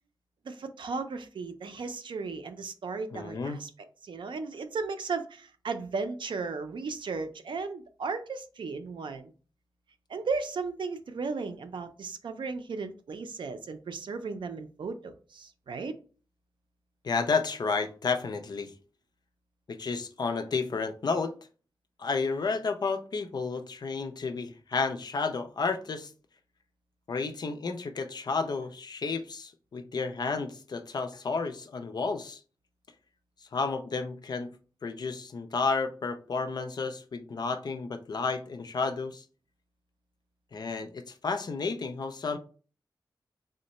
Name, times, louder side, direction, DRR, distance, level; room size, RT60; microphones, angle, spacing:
voice 1, 0.4-3.7 4.0-9.3 10.1-15.9, right 4 dB, 80° right, 0.5 m, -35 dB
voice 2, 3.1-3.6 17.0-18.7 19.7-21.3 22.0-26.1 27.1-32.4 33.5-34.5 34.8-39.2 40.5-42.4, left 4 dB, 60° left, 0.5 m, -31 dB
3.7 x 2.1 x 4.0 m
wide cardioid pair, 130°, 8 cm